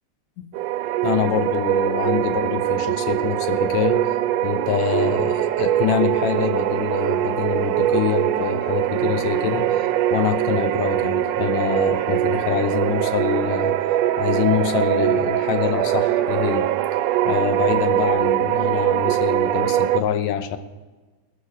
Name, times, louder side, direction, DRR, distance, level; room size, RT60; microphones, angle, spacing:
sound 1, 0.5-20.0, right 13 dB, 80° right, 1.7 m, -22 dB
voice 1, 1.0-4.0 4.4-13.8 14.2-16.7 17.3-20.6, left 9 dB, 75° left, 10 dB, 2.0 m, -25 dB
17.0 x 6.9 x 8.7 m, 1.3 s
omnidirectional pair, 3.4 m